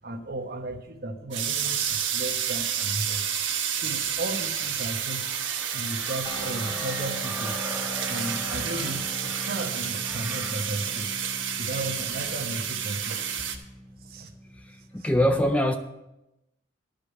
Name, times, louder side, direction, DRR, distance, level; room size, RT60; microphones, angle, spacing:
voice 1, 0.0-3.2 3.7-5.2 5.7-7.6 8.1-11.1 11.6-13.2 14.0-14.3, right 1 dB, 50° right, 5 dB, 1.1 m, -35 dB
sound 1, 1.3-13.6, right 8 dB, 70° right, 1.2 m, -30 dB
Crow, 4.4-10.8 12.2-12.4, right 1 dB, 10° right, 1.3 m, -41 dB
sound 2, 6.2-15.1, left 1 dB, 25° left, 1.1 m, -41 dB
voice 2, 14.6-15.7, equal, 5° left, 7 dB, 0.4 m, -24 dB
12.0 x 5.2 x 7.9 m, 0.92 s
head